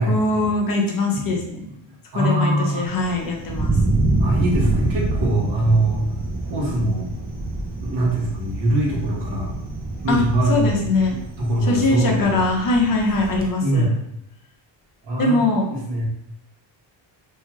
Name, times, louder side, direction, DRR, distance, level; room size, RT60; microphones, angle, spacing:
voice 1, 0.1-1.6 2.1-3.8 10.1-10.2 10.5-11.2 11.6-13.9 15.2-15.7, left 2 dB, 45° left, 1 dB, 0.8 m, -21 dB
voice 2, 2.1-2.9 3.5-3.6 4.2-6.1 6.4-7.1 7.8-9.5 10.0-10.8 11.1-12.4 13.6-14.0 15.0-16.0, right 1 dB, 60° right, -3 dB, 1.2 m, -22 dB
Thunder, 2.9-13.5, right 2 dB, 20° right, 0.5 m, -26 dB
2.7 x 2.4 x 3.0 m, 0.76 s
cardioid pair, 95°, 48 cm